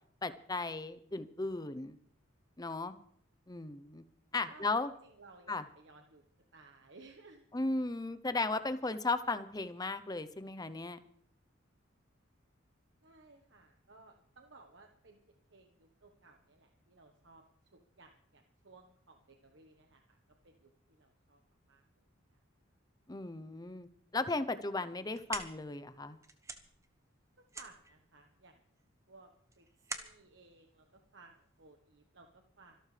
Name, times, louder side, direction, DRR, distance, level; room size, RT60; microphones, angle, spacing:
voice 1, 0.2-2.0 2.6-2.9 3.5-4.0 4.3-4.9 5.5-5.6 7.5-11.0 23.1-23.9 24.1-26.2, left 3 dB, 20° left, 12 dB, 0.7 m, -36 dB
voice 2, 4.5-6.2 6.5-7.4 13.0-15.2 15.5-17.4 17.7-20.2 20.4-21.4 21.7-22.0 27.4-28.6 29.1-29.3 29.6-29.7 29.9-32.8, right 3 dB, 60° right, 3 dB, 1.3 m, -59 dB
sound 1, 24.9-31.7, right 4 dB, 15° right, 1.0 m, -47 dB
25.5 x 12.5 x 3.3 m, 0.64 s
head